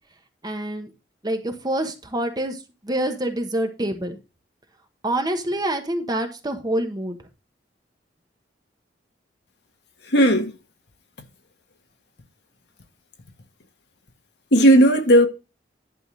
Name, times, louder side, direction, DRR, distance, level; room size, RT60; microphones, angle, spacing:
voice 1, 0.4-0.9 1.2-4.2 5.0-7.3, right 1 dB, 20° right, 1.2 m, -26 dB
voice 2, 10.1-10.5 14.5-15.3, right 1 dB, 65° left, 1.5 m, -14 dB
11.0 x 3.7 x 6.2 m
head